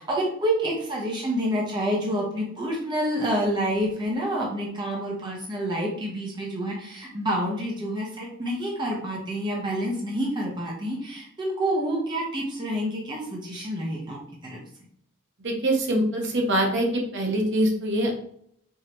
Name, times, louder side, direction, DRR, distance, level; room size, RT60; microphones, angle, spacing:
voice 1, 0.0-14.2 14.4-14.6, equal, 20° right, -3 dB, 0.9 m, -28 dB
voice 2, 15.4-18.1, right 1 dB, 60° right, 1 dB, 1.0 m, -24 dB
4.6 x 2.8 x 3.0 m, 0.66 s
head